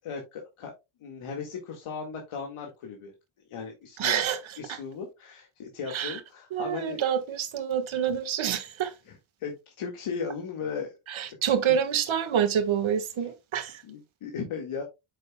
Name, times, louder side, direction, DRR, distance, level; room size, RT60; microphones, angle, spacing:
voice 1, 0.0-0.7 1.0-3.1 3.5-4.2 4.6-7.0 9.1-11.0 13.8-14.8, left 5 dB, 80° left, 1.9 m, -37 dB
voice 2, 4.0-4.8 5.9-6.2 6.5-8.9 11.1-13.8, right 8 dB, 70° right, 1.5 m, -27 dB
9.1 x 6.7 x 2.2 m
wide cardioid pair, 135°, 50 cm